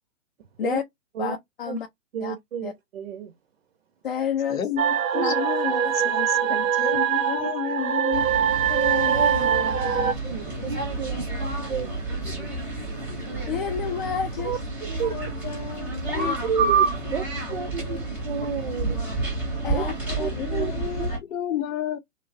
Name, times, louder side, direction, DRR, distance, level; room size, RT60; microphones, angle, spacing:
voice 1, 1.2-1.9 2.2-2.4 2.6-2.7 4.0-4.6 5.2-5.3 8.7-9.2 13.1-14.6 16.1-16.4 19.6-20.3, left 8 dB, 45° left, 0.4 m, -29 dB
voice 2, 2.1-3.3 5.1-5.4 7.4-7.5 10.2-11.3 11.7-11.9 12.4-12.5 14.4-15.2 16.1-17.2 17.5-19.0 19.7-19.8 20.2-20.7 21.0-21.1, right 7 dB, 50° right, 0.5 m, -31 dB
voice 3, 4.5-8.3 20.3-22.0, left 10 dB, 75° left, 0.7 m, -31 dB
sound 1, 4.8-10.1, right 9 dB, 80° right, 0.7 m, -23 dB
voice 4, 5.6-6.9 9.0-10.7 11.0-11.4 11.7-12.5 14.8-15.9 16.7-18.1 19.8-20.2, left 5 dB, 25° left, 0.9 m, -42 dB
sound 2, 8.1-21.2, right 3 dB, 5° right, 0.7 m, -29 dB
2.8 x 2.0 x 2.6 m
hypercardioid pair, 140°, 41 cm